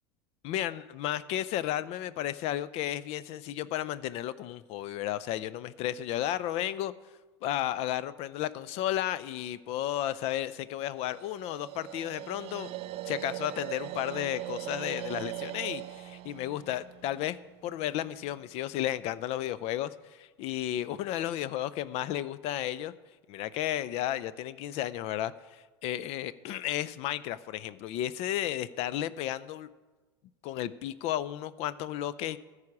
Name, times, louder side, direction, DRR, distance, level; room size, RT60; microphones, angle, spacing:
voice 1, 0.4-6.9 7.4-12.7 13.1-17.4 17.6-22.9 23.3-29.7 30.4-32.4, left 12 dB, 50° left, 17 dB, 0.4 m, -33 dB
sound 1, 11.0-18.1, right 17 dB, 45° right, 0.5 m, -41 dB
14.0 x 4.8 x 8.4 m, 1.3 s
hypercardioid pair, 80°, 14 cm